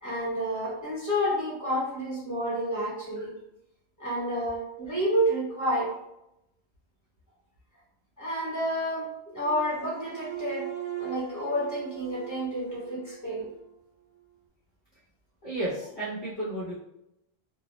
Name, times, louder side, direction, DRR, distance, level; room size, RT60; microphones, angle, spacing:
voice 1, 0.0-3.3 4.0-5.9 8.2-10.7 11.0-13.5, equal, 20° left, -7 dB, 1.0 m, -29 dB
sound 1, 9.4-13.7, right 12 dB, 80° right, 0.9 m, -40 dB
voice 2, 15.4-16.7, right 1 dB, 40° left, -7 dB, 0.6 m, -32 dB
2.2 x 2.0 x 2.8 m, 0.85 s
omnidirectional pair, 1.0 m